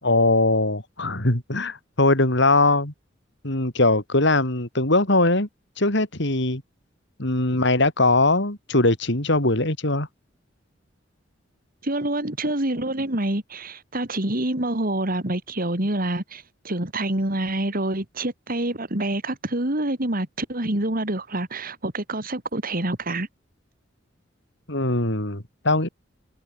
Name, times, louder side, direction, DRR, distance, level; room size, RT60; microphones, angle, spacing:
voice 1, 0.0-2.9 3.4-5.5 5.8-6.6 7.2-10.1 24.7-25.9, left 2 dB, 65° left, 4.8 m, -21 dB
voice 2, 11.8-23.3, right 1 dB, 50° right, 3.6 m, -27 dB
head